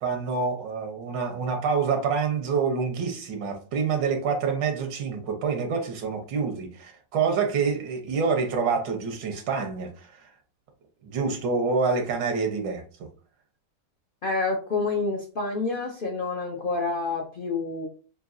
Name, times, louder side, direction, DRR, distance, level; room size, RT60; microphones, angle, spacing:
voice 1, 0.0-10.3 11.0-12.8, right 5 dB, 90° right, 1.6 m, -27 dB
voice 2, 14.2-17.9, left 3 dB, 90° left, 0.4 m, -28 dB
6.0 x 2.7 x 2.5 m
omnidirectional pair, 1.9 m